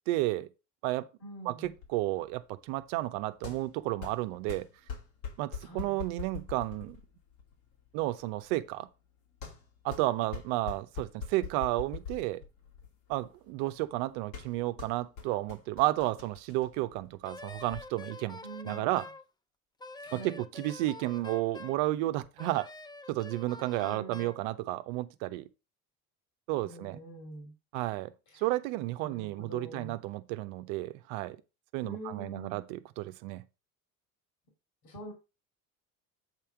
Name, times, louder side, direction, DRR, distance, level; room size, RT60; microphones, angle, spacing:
voice 1, 0.1-0.5 0.8-1.1 1.4-4.7 5.4-7.0 7.9-8.9 9.8-12.4 13.1-19.0 20.1-22.7 23.1-25.5 26.5-27.0 27.7-31.4 31.7-33.4, right 17 dB, 70° right, 0.8 m, -32 dB
voice 2, 1.2-1.7 5.6-6.0 18.4-19.1 20.0-20.4 23.8-24.3 26.6-27.5 28.3-28.5 29.0-30.0 31.8-32.6 34.8-35.1, right 1 dB, 60° left, 2.8 m, -45 dB
sound 1, 1.6-17.8, left 6 dB, 80° left, 3.0 m, -45 dB
Wind instrument woodwind instrument, 17.2-19.2 19.8-21.8 22.4-24.4, left 2 dB, 10° left, 0.6 m, -46 dB
8.3 x 3.4 x 5.8 m
hypercardioid pair, 70°, 41 cm